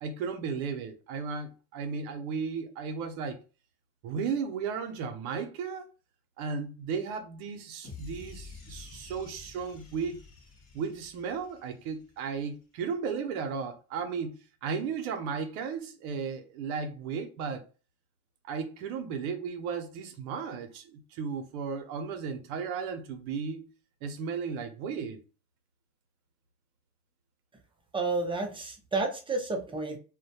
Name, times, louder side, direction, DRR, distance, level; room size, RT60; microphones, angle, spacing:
voice 1, 0.0-3.4 4.0-5.9 6.4-10.2 10.7-17.6 18.4-23.7 24.0-25.2, right 6 dB, 75° right, 0.7 m, -35 dB
sound 1, 7.8-12.2, left 4 dB, 35° left, 0.9 m, -49 dB
voice 2, 27.9-30.0, right 3 dB, 10° right, 0.5 m, -31 dB
2.2 x 2.1 x 2.7 m
hypercardioid pair, 85°, 44 cm